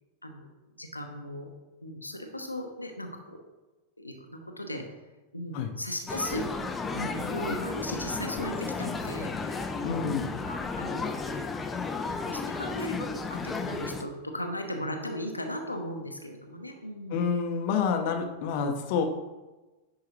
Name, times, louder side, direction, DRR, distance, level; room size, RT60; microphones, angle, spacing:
voice 1, 0.8-1.5 1.8-3.4 4.0-4.8 5.3-6.5 6.9-10.0 10.5-11.2 12.2-17.3, equal, 85° left, 3 dB, 0.8 m, -37 dB
sound 1, 6.1-14.0, left 4 dB, 15° left, 0.6 m, -33 dB
voice 2, 9.8-10.3 17.1-19.0, left 6 dB, 45° left, 5 dB, 0.8 m, -28 dB
10.5 x 4.7 x 3.1 m, 1.1 s
figure-of-eight pair, 90°, 0 cm